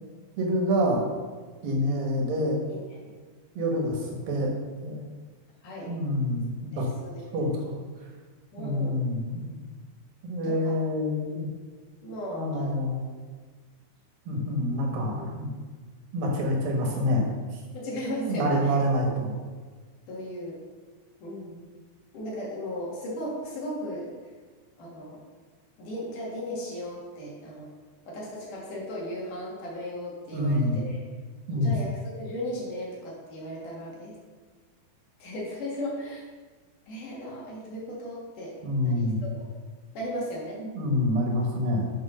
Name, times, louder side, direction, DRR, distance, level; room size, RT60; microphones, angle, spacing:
voice 1, 0.4-1.0 1.6-2.6 3.6-4.5 4.8-5.0 5.9-6.9 7.3-7.8 8.6-9.5 10.2-11.5 12.3-13.0 14.3-15.5 16.1-17.6 18.3-19.4 30.3-30.8 31.5-31.7 38.6-39.2 40.7-41.9, left 1 dB, 70° right, 0 dB, 3.1 m, -27 dB
voice 2, 2.7-3.1 5.6-5.9 6.7-7.5 8.5-9.0 10.4-10.8 11.3-11.4 12.0-12.7 15.1-15.3 17.7-18.7 20.1-20.6 21.2-21.7 22.1-24.1 24.8-25.2 25.8-27.7 28.1-31.0 31.5-34.2 35.2-36.2 36.9-39.5 39.9-40.6, equal, 60° left, -4 dB, 3.3 m, -36 dB
7.3 x 6.4 x 6.2 m, 1.5 s
omnidirectional pair, 4.3 m